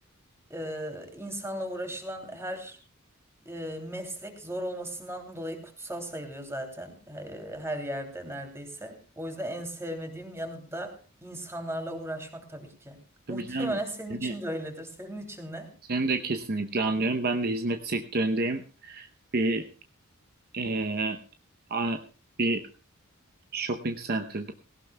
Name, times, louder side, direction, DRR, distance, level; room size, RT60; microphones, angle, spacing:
voice 1, 0.5-2.8 3.4-13.0 13.3-15.7, right 1 dB, 10° right, 4 dB, 2.9 m, -37 dB
voice 2, 13.3-13.8 14.2-14.3 15.9-19.1 19.3-19.6 20.5-21.2 21.7-22.0 22.4-22.6 23.5-24.5, right 2 dB, 45° right, 7 dB, 0.8 m, -28 dB
19.0 x 17.5 x 2.3 m, 0.35 s
head